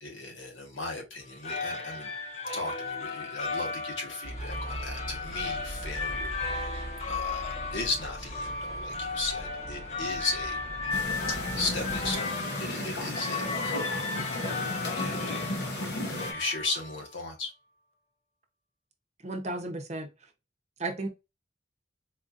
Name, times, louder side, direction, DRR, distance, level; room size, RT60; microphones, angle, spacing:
voice 1, 0.0-2.1 2.5-10.6 11.6-14.4 14.7-17.5, left 3 dB, 85° left, 1.3 m, -36 dB
sound 1, 1.2-17.1, left 4 dB, 35° left, 0.6 m, -35 dB
sound 2, 4.2-12.2, right 1 dB, 15° left, 1.0 m, -41 dB
sound 3, 10.9-16.3, left 1 dB, 60° left, 0.9 m, -34 dB
voice 2, 19.2-20.1 20.8-21.1, right 2 dB, 35° right, 0.7 m, -33 dB
4.2 x 2.6 x 2.5 m
head